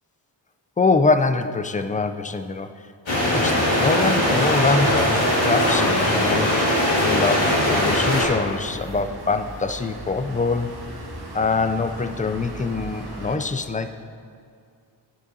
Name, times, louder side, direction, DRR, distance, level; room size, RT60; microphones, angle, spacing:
voice 1, 0.8-2.7 3.1-6.5 7.0-10.7 11.3-13.9, left 3 dB, 20° left, 9 dB, 0.4 m, -24 dB
sound 1, 3.1-8.2, left 1 dB, 85° left, 1.8 m, -20 dB
sound 2, 7.8-13.4, right 1 dB, 55° right, 1.5 m, -38 dB
10.0 x 8.2 x 2.7 m, 2.3 s
cardioid pair, 55°, 45 cm